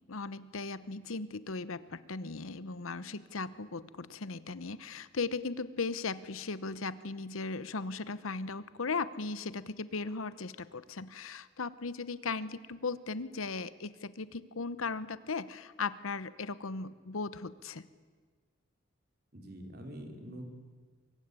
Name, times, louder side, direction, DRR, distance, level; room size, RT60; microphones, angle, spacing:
voice 1, 0.1-17.9, left 4 dB, 80° left, 15 dB, 0.9 m, -37 dB
voice 2, 19.3-20.4, equal, 45° right, 3 dB, 3.9 m, -45 dB
23.5 x 22.0 x 9.7 m, 1.5 s
head